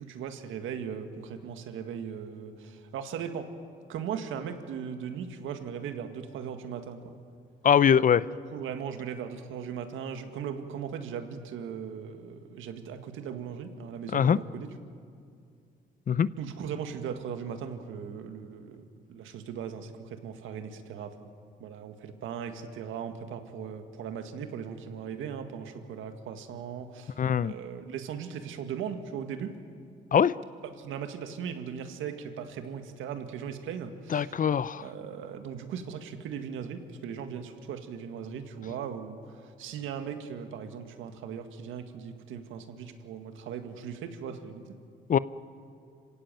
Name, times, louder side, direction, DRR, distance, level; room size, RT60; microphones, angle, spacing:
voice 1, 0.0-3.5 3.9-7.1 8.1-8.2 8.5-14.7 16.4-18.8 19.1-21.3 21.6-29.5 30.6-34.4 34.8-44.6, right 7 dB, 85° right, 7 dB, 1.9 m, -38 dB
voice 2, 7.6-8.2 14.1-14.4 16.1-16.3 27.2-27.5 30.1-30.4 34.1-34.8 45.1-45.2, left 8 dB, 45° left, 18 dB, 0.6 m, -22 dB
26.5 x 16.0 x 9.1 m, 2.4 s
cardioid pair, 90°, 20 cm